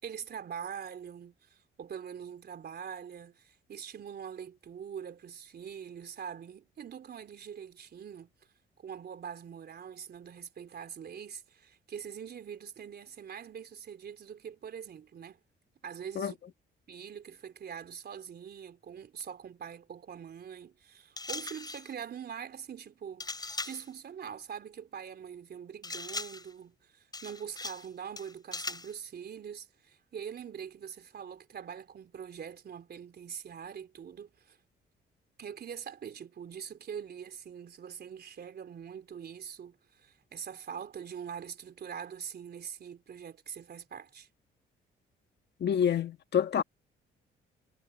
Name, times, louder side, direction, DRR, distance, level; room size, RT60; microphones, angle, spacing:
voice 1, 0.0-8.3 8.8-15.4 15.8-16.4 16.9-34.6 35.4-44.3, right 8 dB, 55° right, 3.7 m, -43 dB
sound 1, 21.2-21.9 23.2-23.9 25.8-26.5 27.1-27.9 28.2-28.9, left 3 dB, 20° left, 5.2 m, -39 dB
voice 2, 45.6-46.6, left 8 dB, 60° left, 1.5 m, -27 dB
cardioid pair, 90°, 20 cm